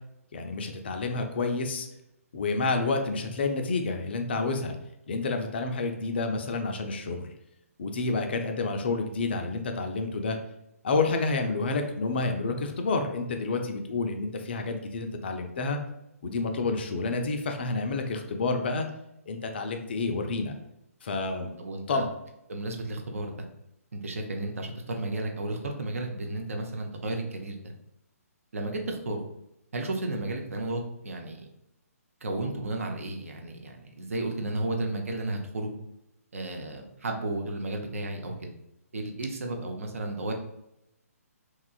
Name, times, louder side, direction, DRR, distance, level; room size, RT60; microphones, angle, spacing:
voice 1, 0.3-1.9 2.3-4.8 5.1-7.3 7.8-10.4 10.8-15.8 16.2-18.9 19.3-20.5 21.0-21.5 21.9-22.1, left 3 dB, 40° left, 5 dB, 0.3 m, -29 dB
voice 2, 21.6-22.1 22.5-23.5 23.9-27.7 28.5-29.2 29.7-31.5 32.2-35.7 36.3-38.5 38.9-40.3, right 2 dB, 60° right, 3 dB, 0.5 m, -33 dB
2.9 x 2.3 x 2.3 m, 0.85 s
figure-of-eight pair, 135°, 8 cm